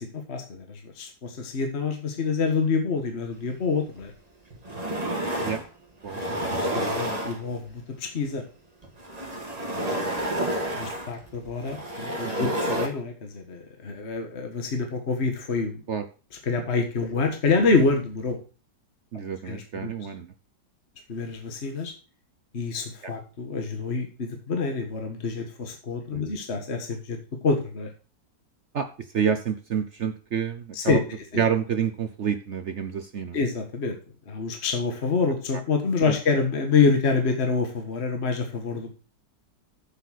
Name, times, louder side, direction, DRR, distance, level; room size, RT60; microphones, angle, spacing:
voice 1, 0.0-4.1 6.2-8.4 10.8-15.8 16.4-18.4 19.4-19.9 21.1-21.9 22.5-27.9 30.7-31.0 31.3-31.4 33.3-33.9 34.3-39.0, left 4 dB, 40° left, 4 dB, 1.7 m, -27 dB
sound 1, 4.0-4.1 4.5-5.7 6.0-7.7 8.8-12.9, right 1 dB, 20° right, 2.3 m, -29 dB
voice 2, 6.0-7.2 12.2-12.5 15.9-16.1 19.1-20.3 23.0-23.1 26.1-26.4 28.7-28.9 29.1-31.0 31.4-33.4 36.1-36.2, right 7 dB, 55° right, 8 dB, 0.9 m, -29 dB
7.9 x 7.6 x 6.3 m, 0.35 s
omnidirectional pair, 1.9 m